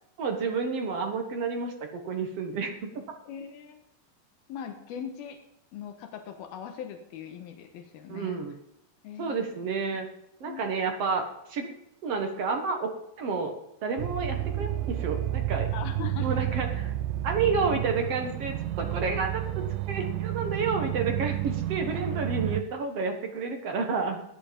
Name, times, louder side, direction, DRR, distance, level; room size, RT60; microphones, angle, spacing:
voice 1, 0.2-3.0 8.1-8.5 9.2-10.1 10.4-11.2 11.5-11.7 12.0-12.9 13.2-13.5 13.8-15.7 16.2-16.9 17.2-19.4 19.9-24.2, right 4 dB, 55° right, 4 dB, 2.0 m, -30 dB
voice 2, 3.3-3.8 4.5-5.4 5.7-8.4 9.0-9.6 10.4-10.7 15.7-16.5, left 8 dB, 85° left, 6 dB, 3.1 m, -40 dB
sound 1, 14.0-22.6, right 14 dB, 75° right, 2.0 m, -31 dB
15.5 x 10.0 x 5.3 m, 0.80 s
omnidirectional pair, 4.2 m